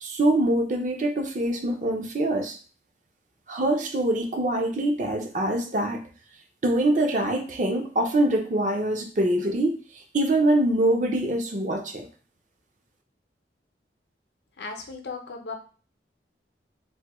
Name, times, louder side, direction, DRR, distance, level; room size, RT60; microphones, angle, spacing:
voice 1, 0.0-2.6 3.5-6.0 6.6-9.8 10.1-12.1, right 1 dB, 45° right, 3 dB, 0.5 m, -24 dB
voice 2, 14.6-15.5, left 4 dB, 75° left, 3 dB, 0.6 m, -36 dB
3.4 x 2.1 x 2.9 m, 0.38 s
head